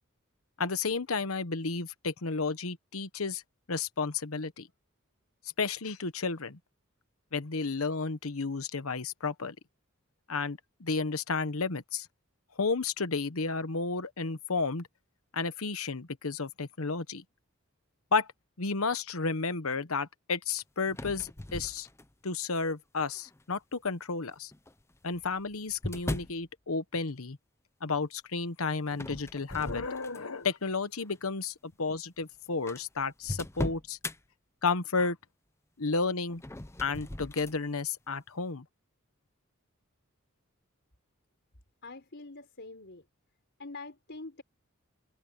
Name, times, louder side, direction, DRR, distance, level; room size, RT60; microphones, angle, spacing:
voice 1, 0.6-3.4 3.7-4.7 5.6-6.6 7.3-9.5 10.3-12.1 12.6-14.9 15.3-17.2 18.1-18.3 18.6-21.9 22.2-24.5 25.0-27.4 27.8-34.0 34.6-35.2 35.8-36.4 36.8-38.6, left 4 dB, 85° left, 1.2 m, -32 dB
sound 1, 20.9-22.3 23.0-23.4 24.5-26.4 28.9-30.5 30.9-31.2 32.0-32.1 32.2-32.3 32.7-34.2 36.3-37.6, left 1 dB, 15° left, 0.7 m, -39 dB
voice 2, 41.8-43.0 43.6-44.4, left 3 dB, 55° left, 5.0 m, -45 dB
head